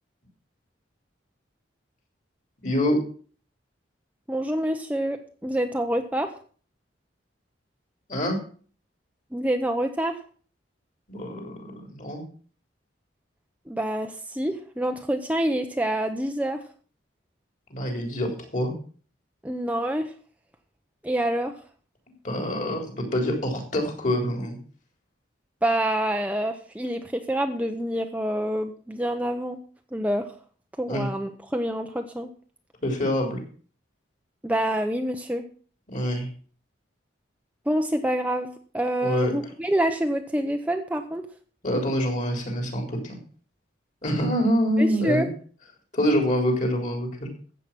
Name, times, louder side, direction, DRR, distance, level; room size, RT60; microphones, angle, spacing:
voice 1, 2.6-3.0 8.1-8.4 11.1-12.2 17.7-18.7 22.1-24.6 30.9-31.1 32.8-33.4 35.9-36.3 39.0-39.3 41.6-43.2 44.0-45.3 45.9-47.3, equal, 40° left, 3 dB, 3.9 m, -26 dB
voice 2, 4.3-6.3 9.3-10.2 13.7-16.6 19.4-20.1 21.0-21.5 25.6-29.6 29.9-30.3 30.8-32.3 34.4-35.5 37.7-41.3 44.8-45.3, right 1 dB, 10° right, 5 dB, 0.8 m, -27 dB
13.5 x 8.4 x 6.0 m, 0.43 s
head